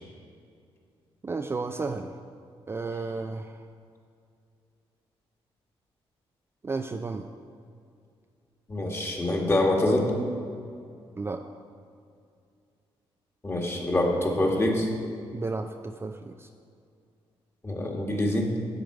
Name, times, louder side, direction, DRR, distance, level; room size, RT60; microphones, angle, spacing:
voice 1, 1.2-2.1 2.7-3.6 6.6-7.3 11.2-11.4 15.3-16.5, right 3 dB, 25° right, 5 dB, 0.4 m, -33 dB
voice 2, 8.7-10.1 13.4-14.9 17.6-18.5, left 1 dB, 25° left, 0 dB, 1.7 m, -25 dB
10.5 x 7.6 x 4.8 m, 2.4 s
cardioid pair, 90°, 10 cm